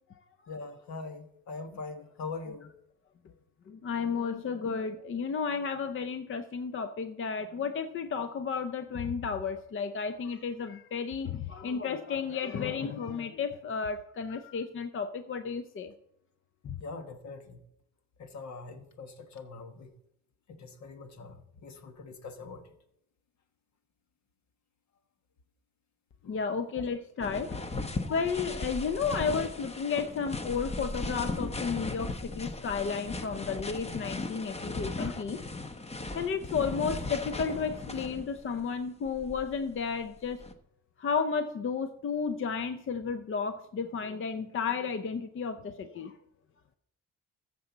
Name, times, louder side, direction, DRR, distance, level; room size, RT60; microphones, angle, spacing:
voice 1, 0.5-2.7 4.3-4.4 16.8-17.6 18.2-19.9 20.5-21.4 21.6-22.6 26.2-26.4, left 4 dB, 65° left, 1.3 m, -42 dB
voice 2, 3.7-15.9 16.6-16.8 26.3-27.7 28.0-35.4 36.1-40.4 41.0-46.1, left 5 dB, 45° left, 0.6 m, -33 dB
sound 1, 27.2-38.5 39.1-40.5, left 2 dB, 20° left, 0.8 m, -37 dB
14.0 x 6.8 x 4.0 m
cardioid pair, 90°, 30 cm